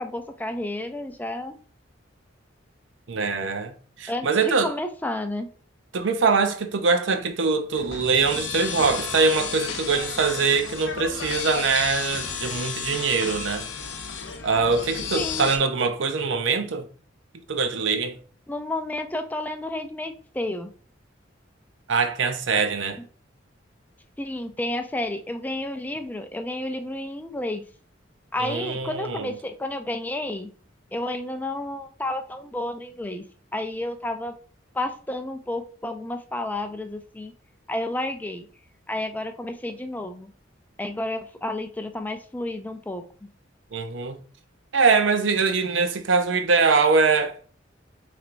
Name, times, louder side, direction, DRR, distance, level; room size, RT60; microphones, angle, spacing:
voice 1, 0.0-1.6 4.1-5.5 15.1-15.5 18.5-20.7 24.2-27.6 28.3-30.5 30.9-33.2 33.5-34.3 34.7-37.3 37.7-38.5 38.9-40.3 40.8-43.0, left 1 dB, 10° left, 0.3 m, -31 dB
voice 2, 3.1-4.7 5.9-13.7 14.4-16.9 17.5-18.2 21.9-23.0 28.4-29.3 43.7-44.2 44.7-47.4, right 4 dB, 75° right, 0.6 m, -23 dB
sound 1, 7.7-15.6, left 6 dB, 80° left, 0.7 m, -32 dB
5.9 x 3.3 x 2.5 m
head